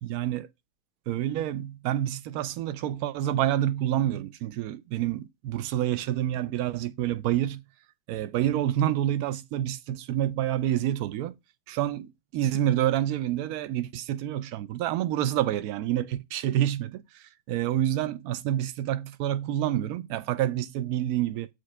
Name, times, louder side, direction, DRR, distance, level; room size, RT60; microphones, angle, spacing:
voice 1, 0.0-0.5 1.1-7.6 8.1-11.3 11.7-21.5, right 12 dB, 45° right, 0.3 m, -28 dB
7.2 x 2.4 x 2.2 m
figure-of-eight pair, 90°, 0 cm